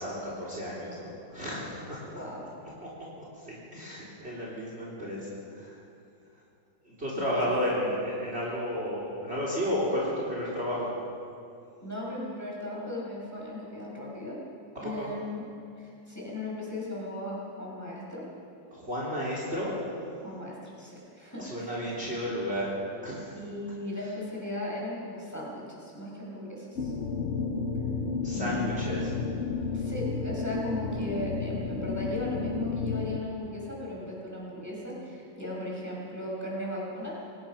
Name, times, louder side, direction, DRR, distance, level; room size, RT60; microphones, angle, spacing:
voice 1, 0.0-2.2 3.4-5.2 5.5-5.7 6.8-10.9 14.8-15.1 18.7-19.7 21.4-22.7 23.0-23.3 28.2-29.1, equal, 30° right, -5 dB, 4.0 m, -32 dB
voice 2, 2.0-2.5 7.1-7.3 11.8-14.4 14.8-15.4 15.8-18.2 20.2-21.8 23.3-26.9 28.3-28.8 29.7-37.2, left 1 dB, 10° left, -5 dB, 6.2 m, -37 dB
sound 1, 26.8-33.2, left 5 dB, 50° left, 0.9 m, -32 dB
25.0 x 19.0 x 5.9 m, 2.6 s
omnidirectional pair, 2.1 m